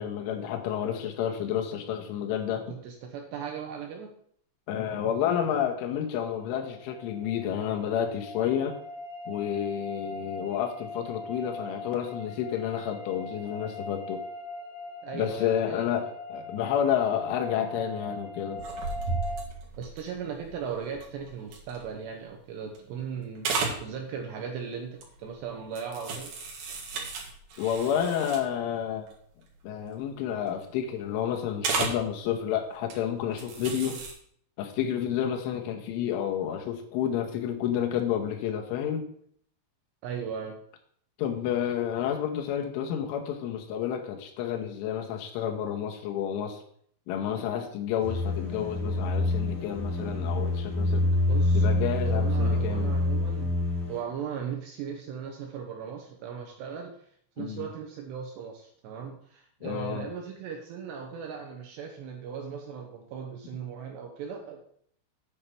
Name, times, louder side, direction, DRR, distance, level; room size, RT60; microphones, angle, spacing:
voice 1, 0.0-2.8 4.7-8.8 9.3-14.2 15.1-18.7 27.6-29.1 29.6-34.0 34.6-39.1 41.2-46.6 47.1-51.1 51.5-52.9 57.4-57.7 59.6-60.1, left 9 dB, 80° left, 2 dB, 3.5 m, -30 dB
voice 2, 2.7-4.1 15.0-16.1 19.8-26.3 40.0-40.6 51.3-51.7 52.0-53.5 53.9-57.1 57.4-64.6, right 7 dB, 75° right, 2 dB, 2.7 m, -38 dB
sound 1, 6.3-19.4, left 1 dB, 55° left, 1.6 m, -41 dB
sound 2, 18.6-22.2 22.7-23.1 23.3-23.8 24.9-25.3 25.7-28.6 29.1-29.2 29.4-29.7 30.0-30.6 31.6-32.0 32.7-32.9 33.3-34.1, right 4 dB, 60° right, 3.0 m, -34 dB
sound 3, 48.0-54.0, left 1 dB, ahead, 0.9 m, -26 dB
8.5 x 4.4 x 6.8 m, 0.63 s
omnidirectional pair, 5.7 m